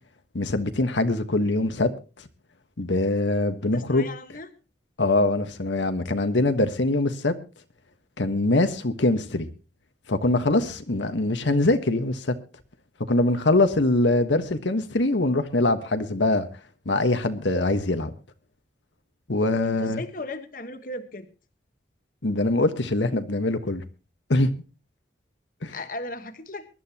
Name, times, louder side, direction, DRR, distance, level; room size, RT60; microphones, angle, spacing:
voice 1, 0.3-1.9 2.8-4.1 5.0-7.3 8.2-9.5 10.1-12.3 13.1-16.5 16.8-18.1 19.3-20.0 22.2-23.8 24.3-24.5 25.6-25.7, left 2 dB, 85° left, 1.3 m, -23 dB
voice 2, 3.6-4.5 19.6-21.3 25.7-26.7, left 2 dB, 45° left, 1.2 m, -36 dB
23.0 x 12.0 x 2.9 m
head